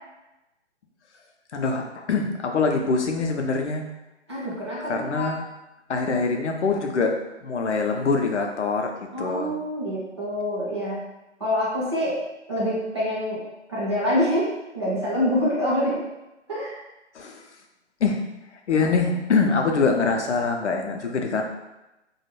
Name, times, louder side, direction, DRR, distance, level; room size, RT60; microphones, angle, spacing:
voice 1, 1.5-3.8 4.9-5.4 5.9-8.9 9.2-9.5 17.1-17.4 18.0-18.2 18.7-21.4, left 4 dB, 70° left, 3 dB, 0.6 m, -24 dB
voice 2, 4.3-5.3 9.1-11.1 11.4-12.2 12.5-16.0 16.5-16.8, equal, 25° right, -7 dB, 0.5 m, -26 dB
2.3 x 2.1 x 3.1 m, 0.96 s
figure-of-eight pair, 145°, 36 cm